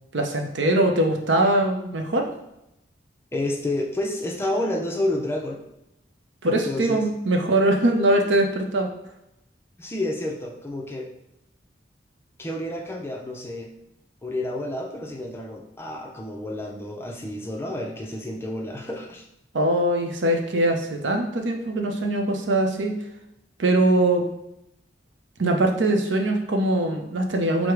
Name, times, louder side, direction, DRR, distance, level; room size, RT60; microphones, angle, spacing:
voice 1, 0.1-2.3 6.4-8.9 19.5-22.9 23.6-24.2 25.4-27.7, right 1 dB, 90° right, 3 dB, 0.6 m, -22 dB
voice 2, 3.3-5.6 6.4-7.0 9.8-11.1 12.4-13.7 14.2-19.2, left 1 dB, 15° left, 0 dB, 0.4 m, -30 dB
4.7 x 2.1 x 4.7 m, 0.85 s
head